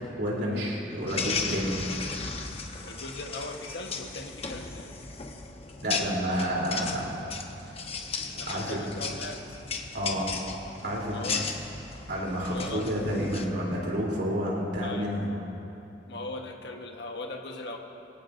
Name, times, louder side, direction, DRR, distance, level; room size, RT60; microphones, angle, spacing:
voice 1, 0.2-1.8 5.8-7.1 8.5-8.8 9.9-10.3 10.8-11.2 12.1-15.3, equal, 65° right, -3 dB, 3.3 m, -29 dB
sound 1, 1.1-13.5, left 4 dB, 35° left, 0.9 m, -36 dB
voice 2, 2.8-5.0 8.4-9.4 11.1-11.5 12.5-12.9 14.8-15.2 16.0-17.8, left 2 dB, 65° left, 3 dB, 1.2 m, -39 dB
23.5 x 16.5 x 2.6 m, 3.0 s
head